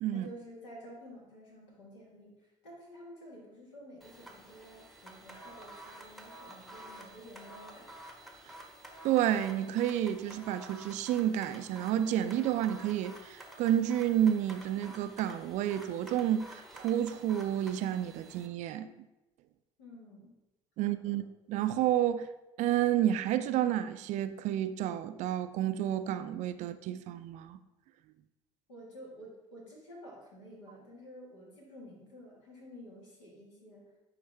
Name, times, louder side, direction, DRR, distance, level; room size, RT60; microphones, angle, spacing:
voice 1, 0.1-7.9 19.8-20.3 20.8-21.2 28.7-33.9, equal, 75° left, 1.7 m, -51 dB
sound 1, 4.0-18.5, right 1 dB, ahead, 1.0 m, -50 dB
voice 2, 9.0-18.9 20.8-21.2 21.5-22.3 22.6-27.6, right 11 dB, 50° right, 0.4 m, -30 dB
9.6 x 3.2 x 3.3 m
figure-of-eight pair, 55°, 16 cm